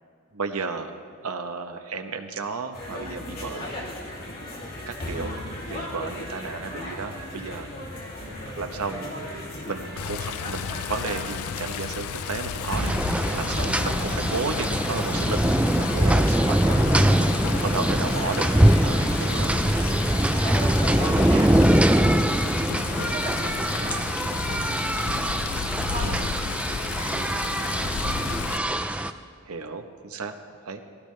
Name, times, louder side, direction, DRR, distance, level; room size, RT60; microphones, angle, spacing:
voice 1, 0.3-3.7 4.9-5.4 5.7-7.7 8.6-12.9 13.3-16.8 17.5-18.5 18.8-19.5 20.9-21.6 26.0-26.3 29.4-30.3 30.6-30.8, right 4 dB, 90° right, 6 dB, 1.0 m, -33 dB
sound 1, 2.7-21.7, left 1 dB, 45° left, 2.7 m, -36 dB
Water, 10.0-28.6, left 9 dB, 75° left, 0.4 m, -33 dB
sound 2, 12.7-29.1, right 1 dB, 5° right, 0.4 m, -23 dB
voice 2, 17.8-18.4 19.0-20.1 21.1-22.6 22.9-24.2 25.7-28.5, right 1 dB, 35° right, -5 dB, 2.5 m, -40 dB
18.5 x 15.5 x 3.3 m, 2.3 s
head